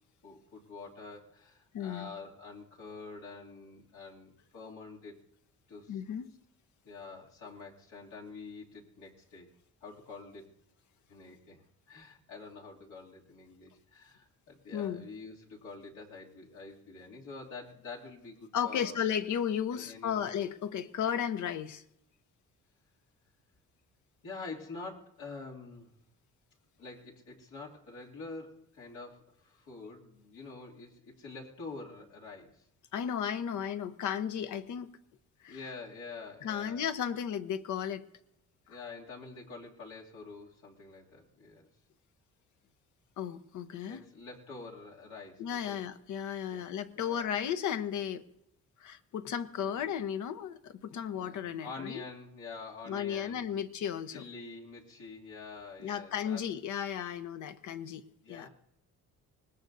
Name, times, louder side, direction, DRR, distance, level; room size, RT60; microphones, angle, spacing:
voice 1, 0.2-5.1 5.7-6.0 6.8-9.5 9.8-10.5 11.1-11.6 11.9-19.0 19.7-20.2 24.2-25.9 26.8-32.6 35.5-36.9 38.7-41.7 43.8-45.8 46.5-46.6 46.9-47.4 49.6-49.7 51.1-53.5 54.1-56.4 58.2-58.5, left 4 dB, 90° left, -4 dB, 2.7 m, -47 dB
voice 2, 1.7-2.1 5.9-6.3 14.7-15.0 18.5-21.8 32.9-34.9 35.4-35.6 36.4-38.0 43.2-44.0 45.4-48.2 48.8-52.0 52.9-54.2 55.8-58.0 58.3-58.5, left 8 dB, 75° left, 10 dB, 0.9 m, -34 dB
24.5 x 19.0 x 2.7 m, 0.79 s
cardioid pair, 90°, 30 cm